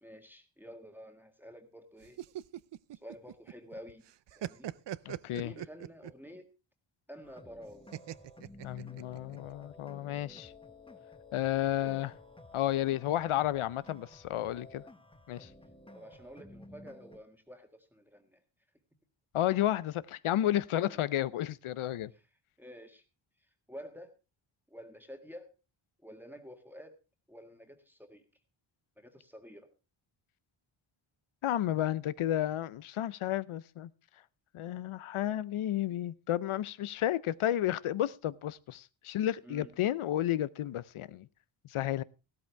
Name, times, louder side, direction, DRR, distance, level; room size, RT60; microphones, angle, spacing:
voice 1, 0.0-2.2 2.9-4.0 4.3-4.7 5.4-6.4 7.1-7.9 11.5-12.1 15.9-18.4 20.7-21.0 22.1-22.2 22.6-23.0 23.7-24.1 24.7-25.5 26.0-27.0 27.3-28.2 29.0-29.7 39.4-39.7, equal, 5° right, 1.7 m, -50 dB
sound 1, 2.0-3.7 4.1-6.3 7.9-9.4, right 12 dB, 60° right, 0.6 m, -41 dB
voice 2, 5.1-5.5 8.6-10.5 11.3-12.1 12.5-14.8 15.3-15.5 19.3-22.1 31.4-33.9 34.5-41.3 41.7-42.0, left 12 dB, 90° left, 0.7 m, -32 dB
sound 2, 7.2-17.2, left 2 dB, 10° left, 1.2 m, -53 dB
14.5 x 13.0 x 3.4 m
wide cardioid pair, 90°, 48 cm